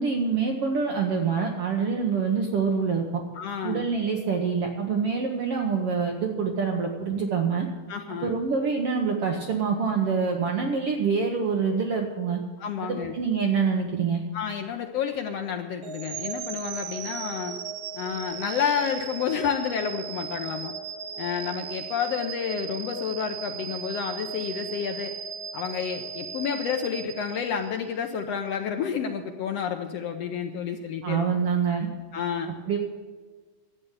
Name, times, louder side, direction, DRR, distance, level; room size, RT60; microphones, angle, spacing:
voice 1, 0.0-3.2 3.6-7.7 8.2-12.4 12.8-14.2 31.0-31.9 32.7-32.8, right 5 dB, 60° right, 2 dB, 1.6 m, -26 dB
voice 2, 3.3-3.9 7.9-8.3 12.6-13.1 14.3-17.5 17.9-20.7 21.2-25.1 25.5-31.2 32.1-32.5, left 7 dB, 85° left, 4 dB, 1.4 m, -30 dB
sound 1, 15.8-27.9, right 7 dB, 90° right, 2.7 m, -37 dB
12.0 x 8.7 x 8.1 m, 1.4 s
omnidirectional pair, 3.8 m